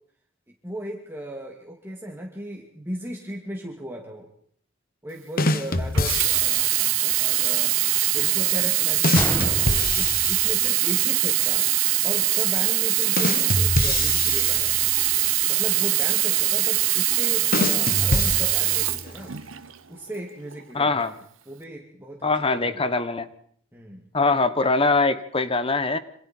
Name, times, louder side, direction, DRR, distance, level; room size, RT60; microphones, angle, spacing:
voice 1, 0.6-4.3 5.0-7.8 8.1-9.6 9.9-11.7 12.0-14.9 15.5-19.3 19.9-21.2 21.5-22.8 23.7-24.1, right 1 dB, 10° right, 0 dB, 2.4 m, -37 dB
sound 1, 5.4-6.8 9.0-11.0 13.2-15.3 17.5-19.1, left 2 dB, 45° left, 1.3 m, -26 dB
Sink (filling or washing), 5.9-19.7 20.5-20.6, right 17 dB, 80° right, 1.0 m, -22 dB
Gunshot gunfire, 9.1-11.2 11.5-11.6 12.2-12.4, left 1 dB, 10° left, 1.7 m, -31 dB
voice 2, 20.7-21.1 22.2-23.3 24.1-26.0, left 3 dB, 30° left, 12 dB, 1.2 m, -22 dB
27.0 x 26.5 x 4.5 m, 0.62 s
head